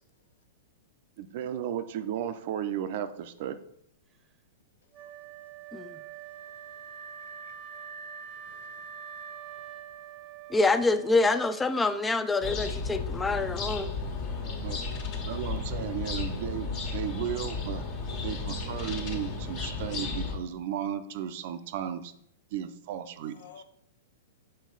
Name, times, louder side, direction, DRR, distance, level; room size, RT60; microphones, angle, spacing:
voice 1, 1.2-3.6 14.3-14.8 15.2-17.8 18.2-22.1 22.5-23.6, right 10 dB, 55° right, 0.6 m, -35 dB
Wind instrument woodwind instrument, 4.9-11.9, right 8 dB, 25° right, 0.8 m, -44 dB
voice 2, 8.4-8.8 14.2-14.3 14.7-14.8 23.2-23.6, left 8 dB, 75° left, 0.7 m, -54 dB
voice 3, 10.5-13.9, left 3 dB, 10° left, 0.4 m, -26 dB
sound 1, 12.4-20.4, left 4 dB, 45° left, 1.5 m, -34 dB
6.4 x 4.1 x 4.0 m
hypercardioid pair, 115°, 0 cm